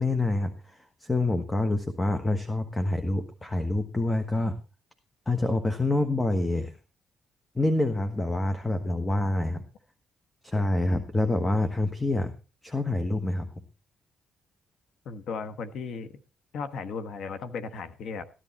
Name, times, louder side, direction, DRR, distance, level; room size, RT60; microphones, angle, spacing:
voice 1, 0.0-4.5 5.3-6.7 7.5-9.6 10.4-12.3 12.6-13.5, left 2 dB, 15° left, 8 dB, 1.3 m, -27 dB
voice 2, 15.0-16.2 16.5-18.2, left 5 dB, 70° left, 12 dB, 1.3 m, -36 dB
14.0 x 11.0 x 4.2 m, 0.32 s
cardioid pair, 90°, 0 cm